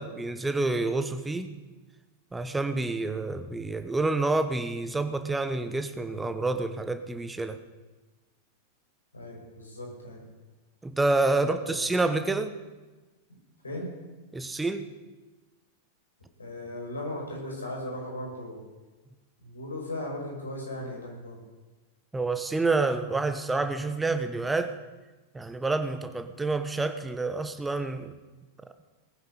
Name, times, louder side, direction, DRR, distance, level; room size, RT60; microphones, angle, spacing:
voice 1, 0.0-1.5 2.3-7.6 10.8-12.6 14.3-14.9 22.1-24.8 25.3-28.1, right 3 dB, 10° right, 9 dB, 1.2 m, -28 dB
voice 2, 9.1-10.2 11.4-11.8 13.6-13.9 16.4-18.6 19.4-21.4, left 1 dB, 75° left, -1 dB, 5.9 m, -37 dB
19.5 x 9.6 x 6.8 m, 1.2 s
figure-of-eight pair, 90°, 0 cm